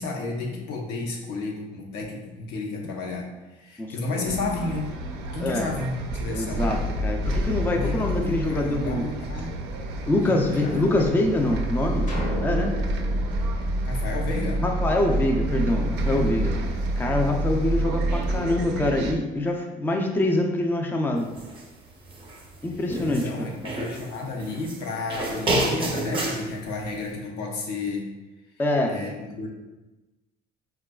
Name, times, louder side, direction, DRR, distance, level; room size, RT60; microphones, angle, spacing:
voice 1, 0.0-4.9 5.3-6.7 7.7-9.6 10.0-11.1 13.8-14.6 22.8-28.1 28.9-29.5, left 3 dB, 85° left, -1 dB, 0.7 m, -32 dB
voice 2, 3.8-4.3 5.4-5.7 6.3-9.1 10.1-12.1 12.4-12.7 14.6-16.5 17.0-21.3 22.6-23.5 28.6-28.9, left 1 dB, 10° left, 2 dB, 0.3 m, -25 dB
Bus, 4.2-19.1, right 1 dB, 85° right, 0.4 m, -28 dB
sound 1, 12.1-14.6, left 1 dB, 50° left, 0.7 m, -34 dB
sound 2, 21.3-21.6 22.0-23.3 23.6-24.8 25.1-26.4, right 1 dB, 30° right, 0.6 m, -28 dB
4.0 x 2.3 x 2.2 m, 1.1 s
cardioid pair, 110°, 17 cm